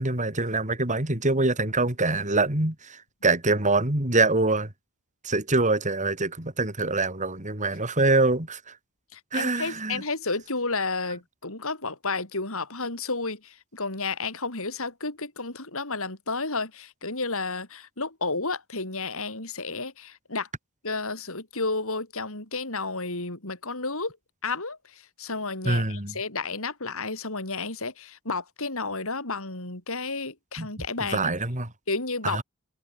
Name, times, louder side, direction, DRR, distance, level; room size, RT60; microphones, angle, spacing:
voice 1, 0.0-4.7 5.2-8.7 9.3-10.0 25.7-26.1 30.6-30.7 31.1-31.7 32.2-32.4, right 2 dB, 35° right, 4.0 m, -24 dB
voice 2, 9.1-20.5 20.8-24.2 24.4-31.3 31.9-32.4, left 3 dB, 65° left, 5.9 m, -32 dB
head